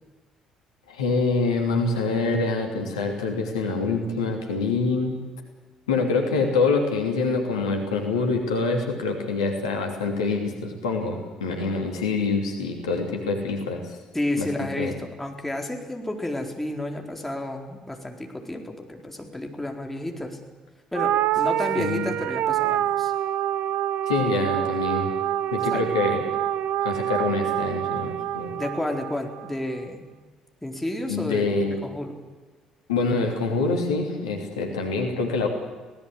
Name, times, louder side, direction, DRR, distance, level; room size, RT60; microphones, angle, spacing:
voice 1, 0.9-5.1 5.9-14.0 14.4-14.9 21.8-22.1 24.1-25.1 25.5-26.2 26.8-28.5 31.1-31.8 32.9-35.5, left 3 dB, 75° left, 2 dB, 2.9 m, -25 dB
voice 2, 14.1-20.4 20.9-23.1 24.3-24.4 25.7-25.8 28.6-30.1 30.6-31.5 31.8-32.2, left 1 dB, 10° left, 2 dB, 4.3 m, -31 dB
sound 1, 20.9-29.5, right 11 dB, 60° right, 0.6 m, -26 dB
25.0 x 18.0 x 7.9 m, 1.3 s
figure-of-eight pair, 50°, 3 cm